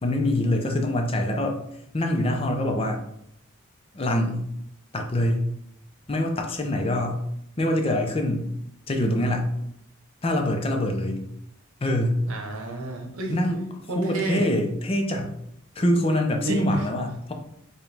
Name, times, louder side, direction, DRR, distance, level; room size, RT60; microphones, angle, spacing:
voice 1, 0.0-1.6 1.9-3.0 3.9-4.5 4.9-5.4 6.1-7.3 7.6-8.5 8.9-9.5 10.2-11.3 11.8-12.1 13.3-13.6 13.9-15.3 15.8-17.3, left 1 dB, 25° left, 3 dB, 0.5 m, -24 dB
voice 2, 12.3-13.4 13.9-14.5 16.4-16.9, right 2 dB, 90° right, 2 dB, 0.9 m, -30 dB
4.9 x 2.3 x 3.3 m, 0.73 s
head